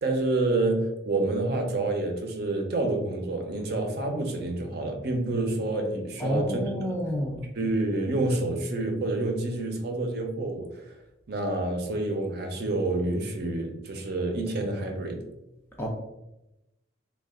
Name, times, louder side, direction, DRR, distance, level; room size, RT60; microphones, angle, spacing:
voice 1, 0.0-6.6 7.5-10.9 11.3-15.2, right 2 dB, 60° right, 4 dB, 0.6 m, -28 dB
voice 2, 6.2-7.4 15.8-15.9, equal, 15° left, 0 dB, 0.4 m, -29 dB
3.3 x 2.3 x 3.6 m, 0.93 s
head